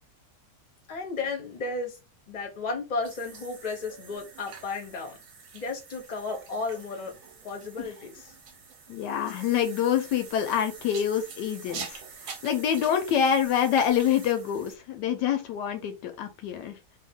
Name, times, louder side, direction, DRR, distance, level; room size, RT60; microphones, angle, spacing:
voice 1, 0.9-2.0 2.3-5.2 5.5-7.2 7.4-8.3, left 3 dB, 30° left, 0.8 m, -33 dB
sound 1, 3.0-14.8, right 5 dB, 60° right, 1.0 m, -45 dB
voice 2, 8.9-12.0 12.4-16.8, left 9 dB, 75° left, 1.2 m, -26 dB
2.7 x 2.7 x 3.6 m
omnidirectional pair, 1.9 m